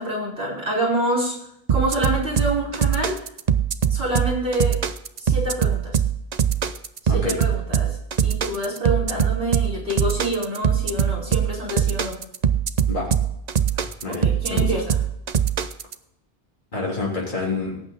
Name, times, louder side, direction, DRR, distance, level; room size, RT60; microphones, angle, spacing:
voice 1, 0.0-1.3 1.7-3.2 3.9-4.8 5.2-6.0 7.0-12.2 14.1-15.0, right 1 dB, 75° right, -4 dB, 5.0 m, -27 dB
sound 1, 1.7-15.9, right 8 dB, 45° right, 0.7 m, -22 dB
voice 2, 7.1-7.4 12.9-13.1 14.0-14.7 16.7-17.8, left 3 dB, 50° left, -4 dB, 3.5 m, -27 dB
17.5 x 8.2 x 3.9 m, 0.77 s
omnidirectional pair, 1.0 m